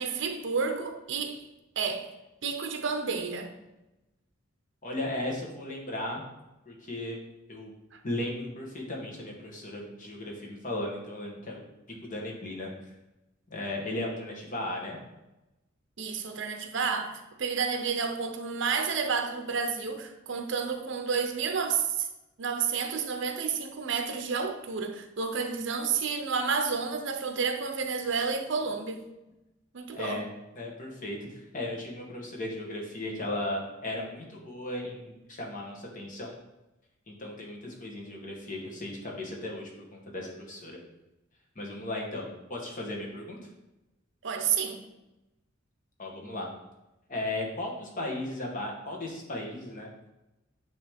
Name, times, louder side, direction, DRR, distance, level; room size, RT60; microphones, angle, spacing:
voice 1, 0.0-1.4 1.8-2.1 2.4-3.5 7.9-8.0 16.0-22.1 22.4-29.0 29.7-30.2 44.2-44.8, right 5 dB, 65° right, 0.7 m, -30 dB
voice 2, 4.8-6.2 6.7-7.2 7.5-7.7 8.0-11.6 12.1-12.7 13.5-15.0 29.9-30.3 30.5-36.4 37.1-40.8 41.5-43.4 46.0-46.5 47.1-50.1, left 1 dB, 40° left, 1.3 m, -36 dB
9.0 x 3.1 x 3.5 m
head